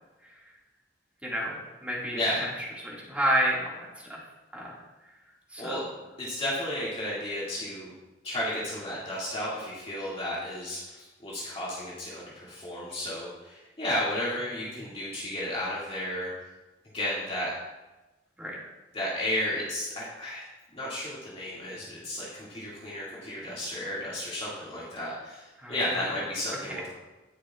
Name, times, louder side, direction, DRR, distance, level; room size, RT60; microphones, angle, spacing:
voice 1, 1.2-2.2 2.8-4.2 4.5-4.7 5.5-5.8 18.4-18.6 25.6-25.8, right 1 dB, 10° right, -5 dB, 2.0 m, -30 dB
voice 2, 2.1-2.4 5.6-5.8 6.2-7.9 8.2-16.3 16.9-17.5 18.9-20.4 20.7-27.0, left 1 dB, 35° left, -8 dB, 2.1 m, -33 dB
17.5 x 6.6 x 2.4 m, 1.1 s
head